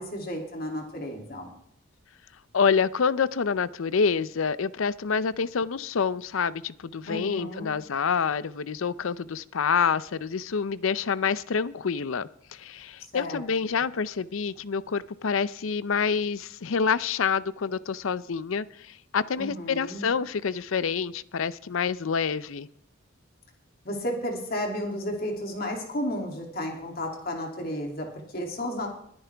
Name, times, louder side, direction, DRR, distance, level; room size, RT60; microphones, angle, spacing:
voice 1, 0.0-1.5 7.1-7.7 13.1-13.8 19.4-20.1 23.8-28.9, equal, 45° left, 1 dB, 2.7 m, -33 dB
voice 2, 2.5-22.7, left 6 dB, 75° left, 17 dB, 0.5 m, -27 dB
22.0 x 9.6 x 3.5 m, 0.69 s
head